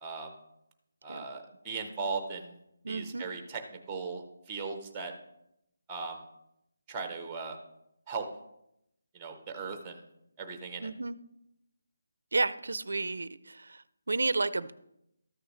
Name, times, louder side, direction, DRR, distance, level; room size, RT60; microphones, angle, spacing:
voice 1, 0.0-0.3 1.0-2.5 2.9-3.6 3.9-4.2 4.5-5.1 5.9-6.2 6.9-7.6 8.1-8.3 9.1-10.0 10.4-10.9, right 4 dB, 10° right, 6 dB, 0.6 m, -37 dB
voice 2, 2.8-3.3 10.8-11.2 12.3-14.7, right 3 dB, 75° right, 16 dB, 0.4 m, -32 dB
13.5 x 6.4 x 3.1 m, 0.80 s
hypercardioid pair, 180°, 0 cm